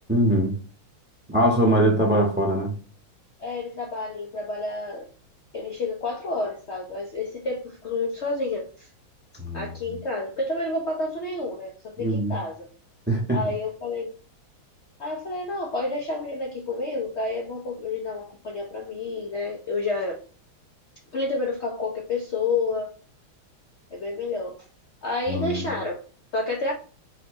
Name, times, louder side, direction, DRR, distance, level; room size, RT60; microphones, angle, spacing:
voice 1, 0.1-0.5 1.3-2.7 9.4-9.7 12.0-12.3 13.1-13.4 25.3-25.7, right 1 dB, 10° right, 0.6 m, -22 dB
voice 2, 3.4-5.1 5.5-8.9 9.5-12.6 13.3-14.1 15.0-20.2 21.1-22.9 23.9-24.6 25.0-26.0 26.3-26.7, left 3 dB, 80° left, 0.6 m, -29 dB
5.6 x 2.9 x 3.1 m
omnidirectional pair, 2.3 m